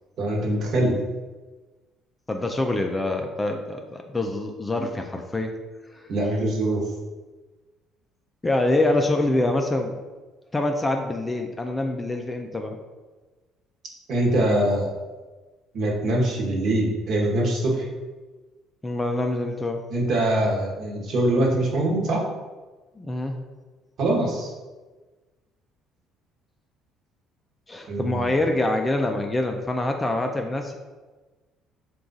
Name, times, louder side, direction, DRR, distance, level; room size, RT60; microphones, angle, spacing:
voice 1, 0.2-0.9 6.1-6.8 14.1-14.9 15.7-17.9 19.9-22.2 24.0-24.5 27.9-28.3, right 1 dB, 55° right, -1 dB, 1.0 m, -23 dB
voice 2, 2.3-5.5 5.9-6.1 8.4-10.0 10.5-12.8 18.8-19.8 23.0-23.3 27.7-30.8, left 2 dB, 15° left, 4 dB, 0.3 m, -25 dB
4.8 x 2.3 x 3.9 m, 1.3 s
cardioid pair, 130°, 0 cm